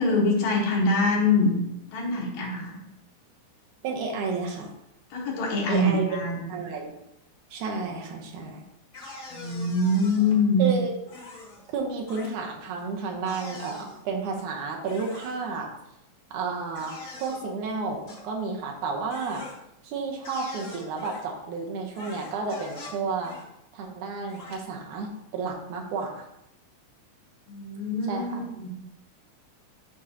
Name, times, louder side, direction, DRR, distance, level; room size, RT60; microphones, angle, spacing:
voice 1, 0.0-1.5 1.9-2.8 5.1-6.5 9.3-10.7 27.5-28.7, left 2 dB, 65° left, -3 dB, 2.4 m, -24 dB
voice 2, 3.8-4.7 5.7-6.1 6.5-6.9 7.5-8.6 10.6-10.9 11.7-15.7 16.3-19.5 19.8-23.4 23.7-26.3 28.1-28.4, right 4 dB, 80° right, 1 dB, 2.4 m, -31 dB
sound 1, 8.9-10.3 11.1-11.6 12.1-12.3 13.3-14.0 14.9-15.4 16.7-17.4 18.1-18.2 19.1-19.6 20.2-21.2 21.9-23.0 23.2-23.4 24.3-24.6, left 2 dB, 35° left, 1.9 m, -42 dB
7.2 x 6.4 x 2.8 m, 0.83 s
omnidirectional pair, 3.5 m